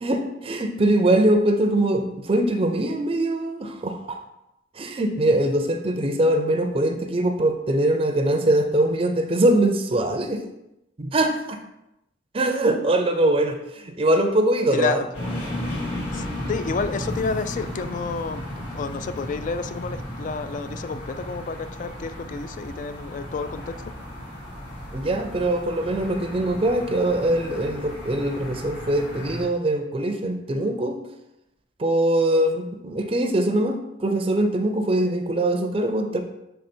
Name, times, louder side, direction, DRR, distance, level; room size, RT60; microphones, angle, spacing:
voice 1, 0.0-4.2 4.7-10.5 11.0-11.6 12.3-15.0 24.9-31.0 31.8-36.2, right 1 dB, 30° right, 6 dB, 0.5 m, -22 dB
voice 2, 14.7-15.1 16.1-23.9, left 4 dB, 45° left, 12 dB, 0.3 m, -30 dB
sound 1, 15.1-29.4, left 1 dB, 85° left, 2.1 m, -34 dB
6.6 x 3.4 x 4.3 m, 0.87 s
head